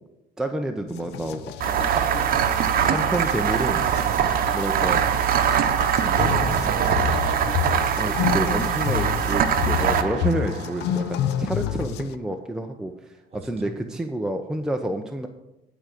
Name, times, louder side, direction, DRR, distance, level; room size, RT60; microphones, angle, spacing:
voice 1, 0.4-1.4 2.8-3.8 4.5-5.1 6.0-6.2 8.0-12.9 13.3-15.3, right 1 dB, 5° right, 4 dB, 0.7 m, -29 dB
sound 1, 0.9-12.1, left 11 dB, 85° left, 0.6 m, -30 dB
sound 2, 1.6-11.0, right 8 dB, 60° right, 0.9 m, -23 dB
voice 2, 6.2-7.5 11.3-11.5 13.3-13.8, right 3 dB, 35° right, 4 dB, 1.7 m, -35 dB
11.0 x 5.1 x 7.6 m, 0.93 s
cardioid pair, 110°, 17 cm